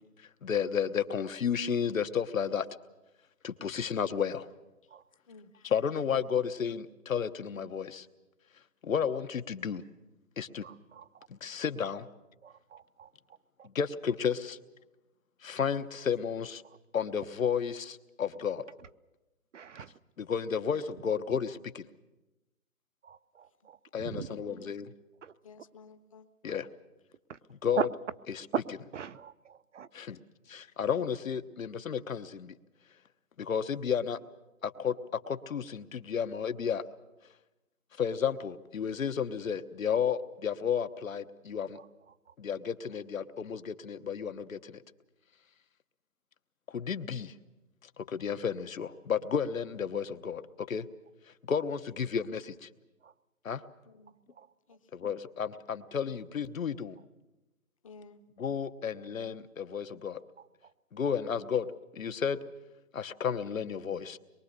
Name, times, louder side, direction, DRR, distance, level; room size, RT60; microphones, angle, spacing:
voice 1, 0.4-2.7 3.4-4.5 5.6-8.1 8.8-9.8 10.4-10.7 11.3-12.1 13.7-14.6 15.4-16.6 16.9-18.6 20.2-21.8 23.9-24.9 26.4-26.7 27.6-27.9 28.3-28.4 29.9-30.2 30.5-32.5 33.4-34.2 34.6-34.9 35.3-36.8 38.0-41.8 42.4-44.8 46.7-47.3 47.8-50.9 51.4-52.7 53.4-53.6 54.9-57.0 58.4-60.2 60.9-62.4 62.9-64.2, left 7 dB, 70° left, 10 dB, 1.2 m, -32 dB
voice 2, 5.3-5.7 24.3-24.6 25.4-26.3 52.0-52.1 53.9-54.2 54.7-54.8 57.8-58.2, left 4 dB, 25° left, 11 dB, 0.8 m, -53 dB
voice 3, 10.6-11.3 12.4-13.1 13.6-13.7 16.6-16.8 19.5-19.9 23.0-24.3 25.2-25.3 27.3-27.4 27.7-27.9 28.5-28.6 28.9-29.9 41.7-41.9 42.3-42.4 53.0-53.1 54.3-54.5 60.4-60.7, right 7 dB, 60° right, 13 dB, 0.8 m, -39 dB
24.0 x 23.0 x 6.7 m, 1.0 s
hypercardioid pair, 160°, 41 cm